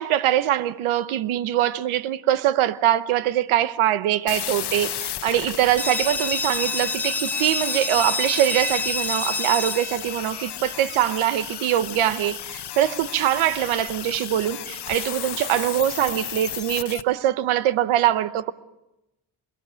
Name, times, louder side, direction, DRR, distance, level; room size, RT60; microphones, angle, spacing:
voice 1, 0.0-18.5, right 12 dB, 85° right, 1.0 m, -23 dB
sound 1, 4.3-17.0, left 11 dB, 55° left, 1.1 m, -34 dB
sound 2, 5.8-11.2, left 3 dB, 5° left, 1.7 m, -28 dB
25.5 x 22.0 x 6.3 m
cardioid pair, 70°, 48 cm